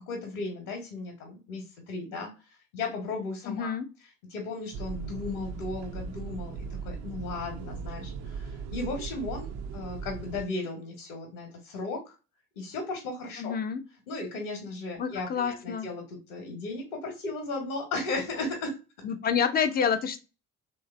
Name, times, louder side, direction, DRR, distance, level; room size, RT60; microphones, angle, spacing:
voice 1, 0.0-3.7 4.3-6.6 6.8-9.5 9.7-12.1 12.6-13.6 14.1-18.7, left 3 dB, 75° left, 1 dB, 1.0 m, -35 dB
voice 2, 3.5-3.9 13.4-13.8 15.0-15.9 19.0-20.2, left 7 dB, 25° left, 9 dB, 0.3 m, -28 dB
sound 1, 4.7-10.5, right 5 dB, 40° right, 0.5 m, -38 dB
3.1 x 2.7 x 2.4 m, 0.30 s
figure-of-eight pair, 55°, 43 cm